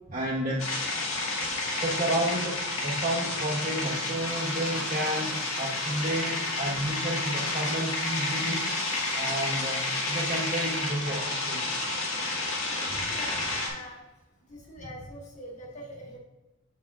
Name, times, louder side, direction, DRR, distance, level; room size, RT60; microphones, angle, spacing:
voice 1, 0.1-0.7 1.8-8.7 9.1-11.7, right 1 dB, 40° right, -4 dB, 0.7 m, -31 dB
sound 1, 0.6-13.7, left 2 dB, 90° left, 1.8 m, -30 dB
voice 2, 12.9-14.0 14.5-16.2, equal, 35° left, -2 dB, 1.5 m, -42 dB
7.2 x 7.1 x 2.4 m, 1.0 s
head